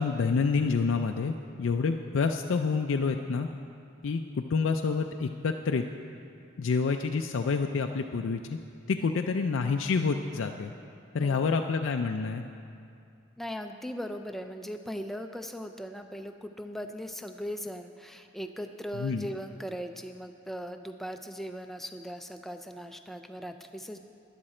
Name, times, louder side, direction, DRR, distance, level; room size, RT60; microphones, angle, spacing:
voice 1, 0.0-3.5 4.0-5.8 6.6-8.4 8.9-10.7 11.1-12.4 18.9-19.3, left 4 dB, 65° left, 4 dB, 0.4 m, -28 dB
voice 2, 13.4-24.0, equal, ahead, 6 dB, 0.4 m, -39 dB
12.5 x 11.0 x 4.3 m, 2.4 s
head